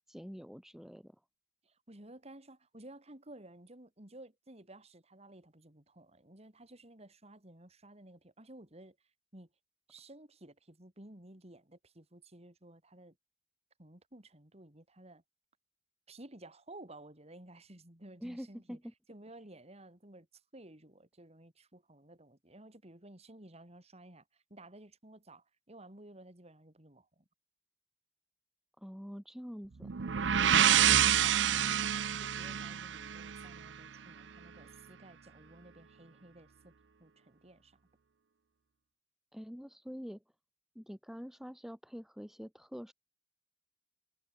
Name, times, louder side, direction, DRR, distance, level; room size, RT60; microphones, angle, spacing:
voice 1, 0.1-1.1 18.2-18.8 28.8-29.9 39.3-40.2 40.7-42.9, equal, ahead, 1.7 m, -45 dB
voice 2, 1.6-9.0 9.3-9.5 9.9-13.2 13.8-15.2 16.1-18.8 19.1-27.3 30.5-36.7 37.0-37.8, right 1 dB, 35° right, 3.7 m, -54 dB
sound 1, 29.8-33.7, right 9 dB, 90° right, 0.6 m, -27 dB
head